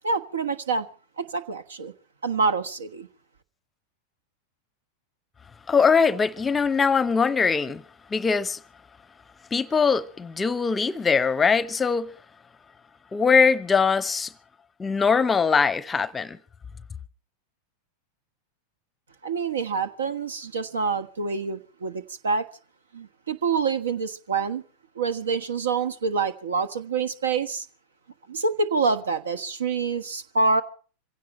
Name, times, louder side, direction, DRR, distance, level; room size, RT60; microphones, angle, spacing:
voice 1, 0.0-0.9 1.2-1.9 2.2-3.1 19.2-22.5 22.9-24.6 24.9-27.6 28.3-30.6, right 4 dB, 70° right, 1.3 m, -26 dB
voice 2, 5.7-7.8 8.1-8.6 9.5-12.1 13.1-14.3 14.8-16.4, left 5 dB, 15° left, 0.7 m, -22 dB
26.0 x 16.5 x 3.1 m
figure-of-eight pair, 90°, 0 cm